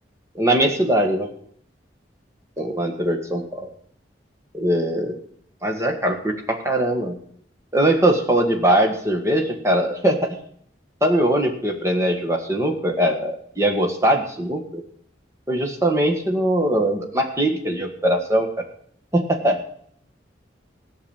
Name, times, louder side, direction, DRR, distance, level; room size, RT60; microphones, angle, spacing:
voice 1, 0.4-1.3 2.6-3.7 4.5-5.1 5.6-7.2 7.7-10.4 11.0-14.8 15.5-18.6 19.1-19.6, right 1 dB, 15° right, 2 dB, 1.7 m, -21 dB
15.5 x 6.2 x 8.8 m, 0.64 s
head